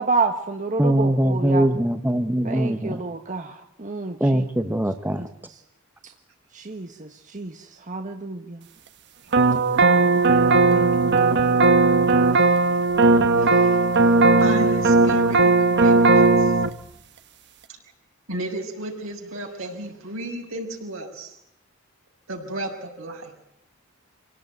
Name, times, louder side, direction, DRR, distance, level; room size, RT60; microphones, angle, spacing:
voice 1, 0.0-1.7 2.4-4.4 5.2-5.3 6.0-6.1 6.5-8.7 9.8-11.5, right 3 dB, 40° right, 5 dB, 1.4 m, -30 dB
voice 2, 0.8-3.0 4.2-5.2, right 1 dB, 10° right, 7 dB, 1.0 m, -22 dB
sound 1, 9.3-16.7, right 3 dB, 55° right, 1.3 m, -17 dB
voice 3, 13.4-16.6 18.3-21.3 22.3-23.3, right 1 dB, 75° right, 2 dB, 6.2 m, -34 dB
26.5 x 17.5 x 9.3 m, 0.80 s
head